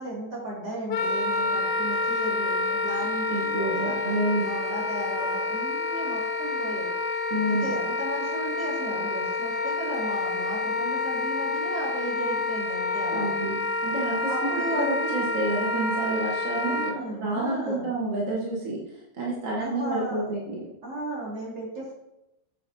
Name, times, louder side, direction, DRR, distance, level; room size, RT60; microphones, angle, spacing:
voice 1, 0.0-6.9 7.5-13.4 14.1-15.2 16.5-17.8 19.6-20.2 20.8-21.9, right 1 dB, 65° right, -6 dB, 3.0 m, -35 dB
Wind instrument woodwind instrument, 0.9-17.0, left 3 dB, 70° left, 1.1 m, -28 dB
voice 2, 3.3-4.5 7.3-7.7 13.1-14.3 14.7-20.7, right 1 dB, 45° right, -4 dB, 1.4 m, -29 dB
8.4 x 5.9 x 2.7 m, 0.91 s
omnidirectional pair, 2.0 m